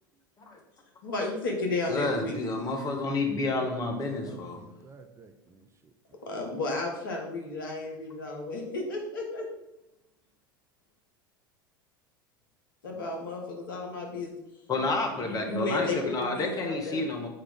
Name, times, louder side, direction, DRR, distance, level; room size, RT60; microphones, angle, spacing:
voice 1, 1.0-2.4 6.2-9.4 12.8-14.3 15.1-17.1, left 2 dB, 70° left, 1 dB, 1.6 m, -33 dB
voice 2, 1.9-4.6 14.7-17.3, left 3 dB, 30° left, 2 dB, 1.5 m, -30 dB
voice 3, 3.0-3.8 4.1-5.9, right 4 dB, 25° right, 7 dB, 0.7 m, -52 dB
7.5 x 4.9 x 3.7 m, 0.93 s
figure-of-eight pair, 75°, 12 cm